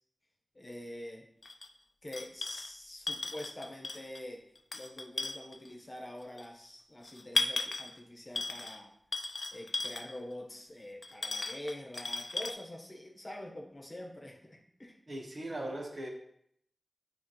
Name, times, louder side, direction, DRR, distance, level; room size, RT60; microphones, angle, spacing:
voice 1, 0.5-1.3 2.0-4.4 4.7-8.9 9.5-15.0, left 1 dB, 35° left, 0 dB, 1.2 m, -45 dB
sound 1, 1.4-1.7 2.1-2.7 3.1-4.2 4.5-5.7 6.4-6.5 7.1-7.9 8.3-8.8 9.1-10.2 11.0-12.5, left 3 dB, 60° left, 0.4 m, -36 dB
voice 2, 15.1-16.1, right 1 dB, 60° right, 0 dB, 1.3 m, -39 dB
8.4 x 3.7 x 3.1 m, 0.71 s
wide cardioid pair, 70°, 0 cm